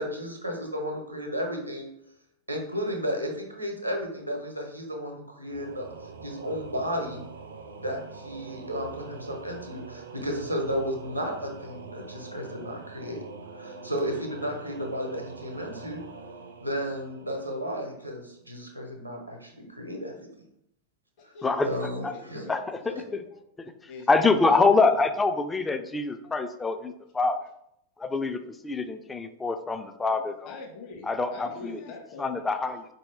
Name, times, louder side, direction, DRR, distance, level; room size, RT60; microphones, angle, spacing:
voice 1, 0.0-1.9 2.5-5.9 6.2-7.2 7.8-13.3 13.5-16.0 16.6-20.3 21.2-21.3 21.6-22.5, equal, 85° right, 2 dB, 0.8 m, -33 dB
Singing / Musical instrument, 5.5-18.0, right 4 dB, 65° right, 0.4 m, -44 dB
voice 2, 21.2-23.2 23.9-24.3 24.6-25.0 26.5-27.0 30.4-32.8, left 4 dB, 40° left, 2 dB, 0.8 m, -44 dB
voice 3, 24.1-27.4 28.0-30.5 31.0-31.8 32.2-32.8, left 3 dB, 15° left, 8 dB, 0.3 m, -25 dB
4.4 x 2.7 x 3.1 m, 0.77 s
figure-of-eight pair, 90°, 0 cm